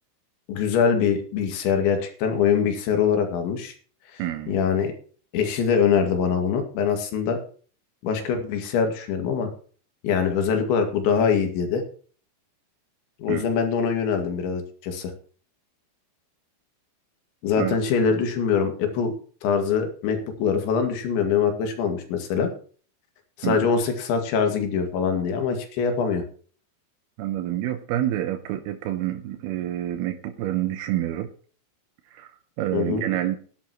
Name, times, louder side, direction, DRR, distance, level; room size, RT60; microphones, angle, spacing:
voice 1, 0.5-3.7 4.1-4.2 4.5-4.9 5.3-7.4 8.0-9.5 10.0-11.8 13.2-15.1 17.4-19.1 19.4-22.5 23.4-26.2 32.7-33.0, left 6 dB, 70° left, 4 dB, 4.3 m, -23 dB
voice 2, 4.2-4.5 13.3-13.5 17.6-17.8 23.4-23.6 27.2-31.3 32.1-32.3 32.6-33.4, right 13 dB, 80° right, 6 dB, 2.3 m, -27 dB
17.5 x 11.0 x 3.1 m, 0.42 s
omnidirectional pair, 5.6 m